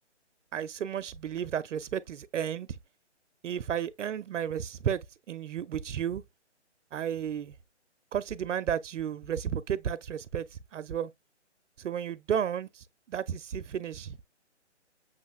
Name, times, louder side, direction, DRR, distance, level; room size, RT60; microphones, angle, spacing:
voice 1, 0.5-2.8 3.4-6.2 6.9-7.5 8.1-11.1 11.8-14.2, right 9 dB, 85° right, 0.5 m, -33 dB
6.3 x 3.1 x 2.3 m
hypercardioid pair, 155°, 36 cm